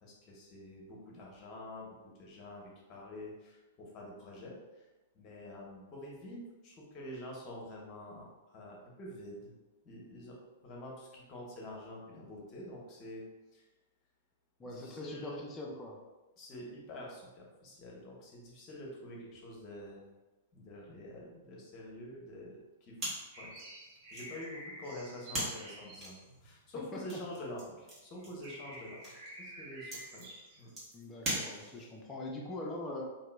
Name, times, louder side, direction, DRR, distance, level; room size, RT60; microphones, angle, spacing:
voice 1, 0.0-4.9 5.1-9.5 9.8-10.4 10.6-13.2 13.5-13.6 14.6-15.4 16.4-20.0 20.5-23.1 23.4-23.5 24.1-29.0 29.4-30.3 30.6-30.7, left 1 dB, 35° left, -2 dB, 0.9 m, -47 dB
voice 2, 14.6-16.0 30.9-33.1, left 1 dB, 20° left, -2 dB, 0.5 m, -42 dB
sound 1, 23.0-32.0, right 1 dB, 25° right, 1.2 m, -43 dB
sound 2, 23.3-27.2 27.8-27.9 28.2-30.7, right 1 dB, 50° right, 0.7 m, -50 dB
2.9 x 2.6 x 2.2 m, 1.1 s
figure-of-eight pair, 105°, 0 cm